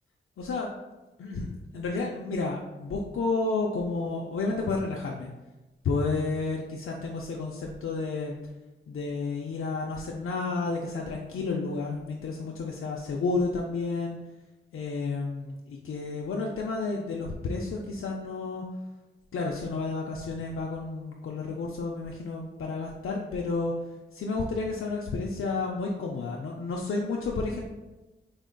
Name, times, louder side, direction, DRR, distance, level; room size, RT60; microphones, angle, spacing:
voice 1, 0.4-0.7 1.2-5.3 5.8-8.3 8.9-14.2 14.7-18.6 19.3-23.7 24.1-27.6, left 3 dB, 80° left, -1 dB, 0.4 m, -31 dB
4.2 x 3.7 x 2.2 m, 1.1 s
cardioid pair, 65°, 21 cm